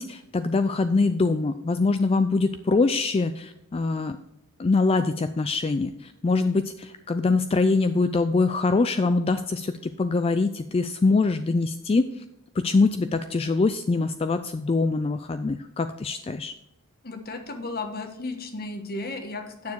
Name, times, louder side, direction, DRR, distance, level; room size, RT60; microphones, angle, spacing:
voice 1, 0.0-4.2 4.6-12.2 12.6-16.5, left 3 dB, 25° left, 10 dB, 0.3 m, -24 dB
voice 2, 17.0-19.7, left 3 dB, 45° left, 6 dB, 1.4 m, -34 dB
9.4 x 6.9 x 4.7 m, 0.88 s
head